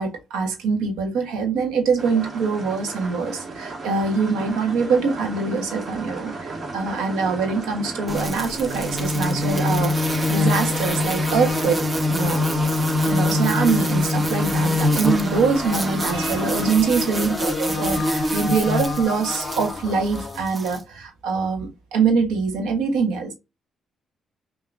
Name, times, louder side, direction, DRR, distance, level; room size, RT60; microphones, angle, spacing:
voice 1, 0.0-11.7 12.1-12.4 13.0-23.3, right 5 dB, 90° right, 1.1 m, -24 dB
sound 1, 2.0-16.8, right 3 dB, 55° right, 1.8 m, -34 dB
sound 2, 8.1-20.8, left 1 dB, 30° right, 1.3 m, -24 dB
voice 2, 9.7-13.0 15.2-15.3 15.6-20.4, left 7 dB, 55° left, 0.3 m, -34 dB
5.8 x 2.8 x 2.5 m
supercardioid pair, 55°, 0 cm